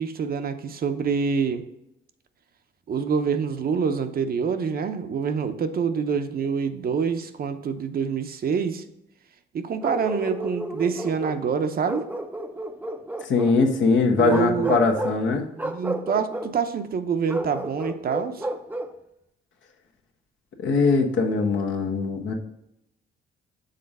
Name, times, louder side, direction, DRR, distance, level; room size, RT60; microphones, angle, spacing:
voice 1, 0.0-1.6 2.9-8.8 9.5-12.1 14.2-14.8 15.6-18.5, right 6 dB, 50° right, 9 dB, 0.7 m, -26 dB
Bark, 9.8-11.4 11.8-13.6 14.2-15.2 15.6-16.5 17.3-19.0, right 1 dB, 10° right, 0.5 m, -32 dB
voice 2, 13.2-15.5 20.6-22.3, left 4 dB, 70° left, 2 dB, 1.1 m, -21 dB
6.6 x 3.8 x 5.3 m, 0.83 s
cardioid pair, 90°, 20 cm